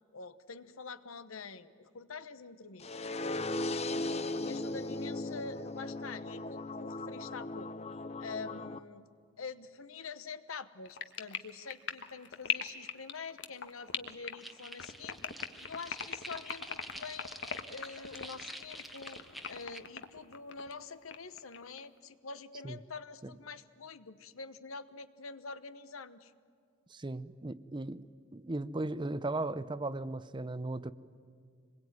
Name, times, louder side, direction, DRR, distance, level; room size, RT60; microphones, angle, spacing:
voice 1, 0.1-7.7 8.2-9.1 9.4-17.3 17.7-19.2 19.5-26.3, left 4 dB, 85° left, 13 dB, 1.1 m, -46 dB
sound 1, 2.8-8.8, left 2 dB, 30° left, 0.7 m, -37 dB
sound 2, 10.9-20.7 21.1-21.9, left 8 dB, 60° left, 1.4 m, -39 dB
sound 3, 14.4-19.8, equal, ahead, 1.1 m, -48 dB
voice 2, 26.9-28.1 28.3-30.9, right 2 dB, 25° right, 15 dB, 0.6 m, -37 dB
26.5 x 21.5 x 9.5 m, 2.3 s
head